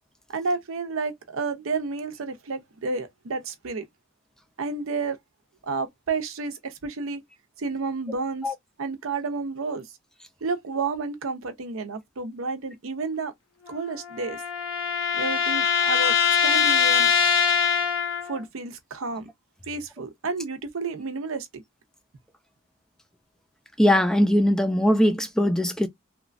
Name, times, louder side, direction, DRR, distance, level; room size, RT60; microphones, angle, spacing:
voice 1, 0.3-3.8 4.6-5.2 5.6-7.2 7.6-9.9 10.4-13.3 13.7-14.4 15.1-16.2 16.4-17.1 18.2-19.3 19.7-21.6, right 4 dB, 80° right, 0.6 m, -31 dB
sound 1, 13.7-18.4, left 7 dB, 75° left, 0.7 m, -23 dB
voice 2, 23.8-25.9, equal, 5° left, 0.3 m, -20 dB
2.9 x 2.2 x 2.5 m
head